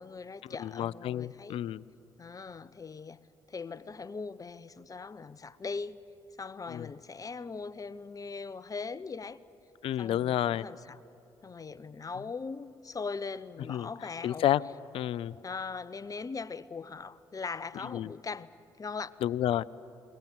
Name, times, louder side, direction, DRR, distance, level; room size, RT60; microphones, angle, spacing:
voice 1, 0.0-1.6 2.2-3.2 3.5-6.0 6.4-9.4 10.0-11.0 11.4-14.4 15.4-18.5 18.8-19.1, left 4 dB, 35° left, 0.8 m, -40 dB
voice 2, 0.6-1.8 6.7-6.9 9.8-10.7 13.7-13.9 14.2-14.6 14.9-15.3 17.9-18.1 19.2-19.6, left 12 dB, 70° left, 0.5 m, -30 dB
22.0 x 19.5 x 9.2 m
hypercardioid pair, 50°, 10 cm